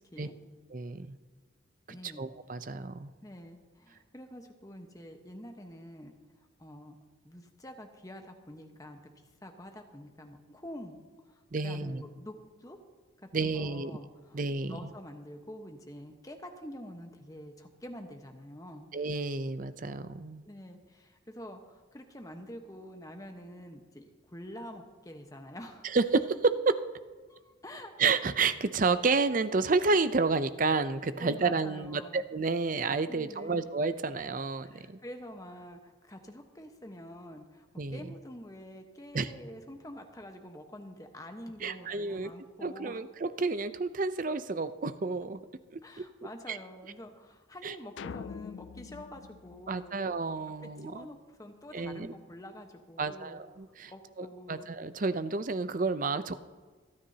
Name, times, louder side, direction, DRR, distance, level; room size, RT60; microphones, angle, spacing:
voice 1, 0.7-1.2 1.9-3.1 11.5-12.0 13.3-14.0 14.3-14.9 18.9-20.5 25.8-26.8 28.0-35.0 37.8-38.0 39.1-39.3 41.6-42.3 42.6-45.4 46.5-46.6 47.6-47.7 49.7-51.1 51.7-52.1 53.0-53.9 54.2-56.4, right 4 dB, 40° right, 12 dB, 0.5 m, -30 dB
voice 2, 1.9-2.3 3.2-6.1 6.6-7.0 7.2-11.0 11.3-12.3 12.6-12.8 13.2-14.4 14.7-18.9 20.4-26.0 27.3-27.9 31.2-32.2 33.1-33.6 34.6-43.0 45.8-50.0 50.6-53.4 53.9-54.7, equal, 15° left, 4 dB, 1.1 m, -47 dB
sound 1, 48.0-50.4, left 6 dB, 65° left, 0.3 m, -44 dB
26.5 x 9.8 x 2.8 m, 1.5 s
head